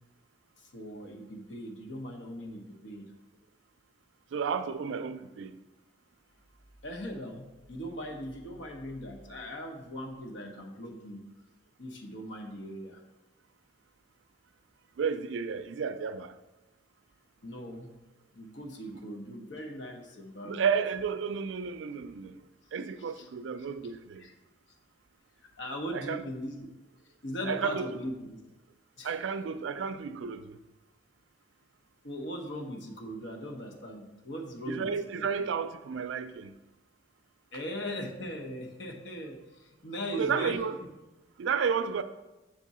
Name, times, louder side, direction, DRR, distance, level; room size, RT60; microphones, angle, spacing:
voice 1, 0.6-3.1 6.8-11.2 11.8-13.0 17.4-17.9 18.3-20.7 23.1-23.3 24.2-24.3 25.6-26.7 27.2-28.4 29.0-29.1 32.0-35.2 37.5-40.6, equal, 80° left, 0.9 m, -39 dB
voice 2, 4.3-5.5 15.0-16.3 20.4-22.3 22.7-24.2 25.9-26.2 27.4-28.0 29.0-30.5 34.7-36.5 40.1-40.8 41.4-42.0, right 6 dB, 85° right, 0.4 m, -32 dB
6.6 x 3.7 x 4.1 m
head